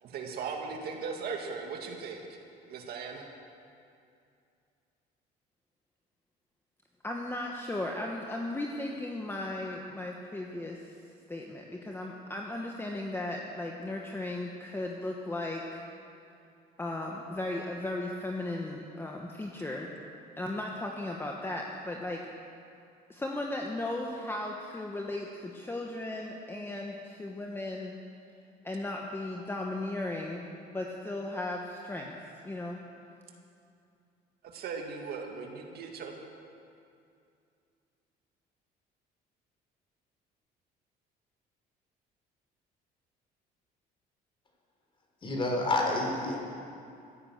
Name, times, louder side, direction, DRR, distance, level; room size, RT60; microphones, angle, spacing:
voice 1, 0.0-2.2 2.7-3.2 34.4-36.1, right 5 dB, 70° right, 2 dB, 2.1 m, -38 dB
voice 2, 7.0-10.8 11.3-15.8 16.8-19.9 20.4-22.2 23.1-28.0 28.6-32.1 32.4-32.8, left 2 dB, 15° left, 0 dB, 1.3 m, -36 dB
voice 3, 45.2-46.4, left 2 dB, 30° left, 1 dB, 3.4 m, -28 dB
15.0 x 11.0 x 8.0 m, 2.5 s
cardioid pair, 110°, 17 cm